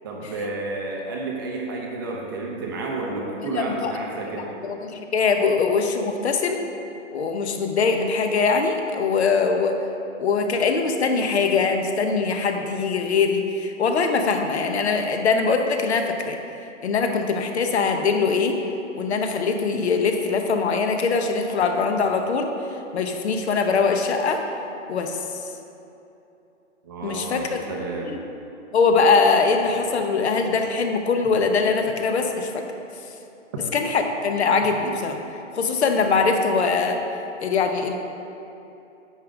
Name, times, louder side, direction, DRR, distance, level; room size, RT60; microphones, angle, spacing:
voice 1, 0.0-4.5 26.8-28.1 31.2-31.3, right 3 dB, 20° right, -1 dB, 0.6 m, -31 dB
voice 2, 3.4-3.9 4.2-6.6 7.1-9.8 10.2-16.4 16.8-18.6 18.9-22.5 22.9-24.4 24.9-25.2 27.0-27.6 28.0-28.2 28.7-32.6 33.7-35.2 35.5-37.0 37.4-38.0, left 4 dB, 55° left, 5 dB, 0.9 m, -22 dB
9.3 x 5.1 x 5.0 m, 2.9 s
hypercardioid pair, 165°, 38 cm